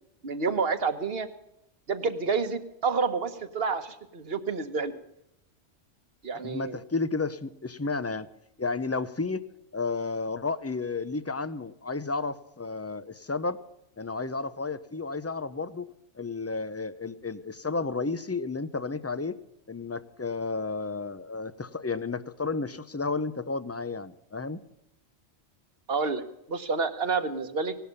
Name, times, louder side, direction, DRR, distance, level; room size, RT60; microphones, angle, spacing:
voice 1, 0.2-1.3 1.9-5.0 6.2-6.8 25.9-27.8, right 4 dB, 55° right, 10 dB, 1.4 m, -29 dB
voice 2, 6.4-8.3 8.6-9.4 9.7-13.6 14.0-15.9 16.2-19.4 19.7-24.6, left 4 dB, 20° left, 15 dB, 0.4 m, -32 dB
18.0 x 11.5 x 6.9 m, 0.83 s
omnidirectional pair, 1.2 m